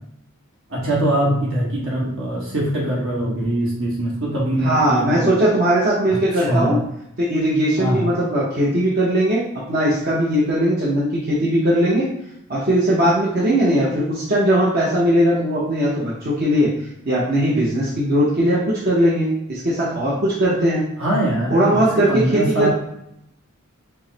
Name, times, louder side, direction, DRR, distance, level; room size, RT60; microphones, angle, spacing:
voice 1, 0.7-5.3 6.1-6.8 7.8-8.1 21.0-21.8 22.1-22.7, right 1 dB, 65° right, -4 dB, 1.4 m, -22 dB
voice 2, 4.6-6.8 7.2-9.4 9.7-12.1 12.5-16.7 17.0-20.8 21.5-22.7, right 1 dB, 45° right, -7 dB, 0.8 m, -19 dB
4.5 x 2.1 x 4.0 m, 0.78 s
head